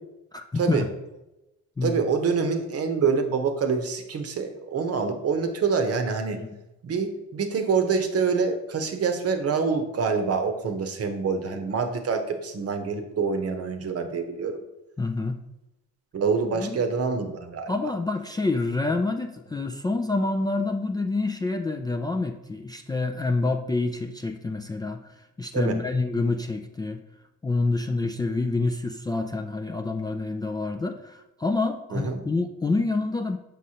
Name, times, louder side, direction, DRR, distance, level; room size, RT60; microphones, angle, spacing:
voice 1, 0.3-0.9 1.8-2.0 6.3-6.6 15.0-15.4 16.5-16.8 17.7-25.1 25.4-27.0 27.4-33.4, left 3 dB, 15° left, 3 dB, 0.3 m, -27 dB
voice 2, 1.8-6.4 6.8-14.6 16.1-17.7 25.5-25.8 31.9-32.2, right 5 dB, 50° right, 6 dB, 0.8 m, -26 dB
6.3 x 5.3 x 2.8 m, 0.96 s
cardioid pair, 90°, 30 cm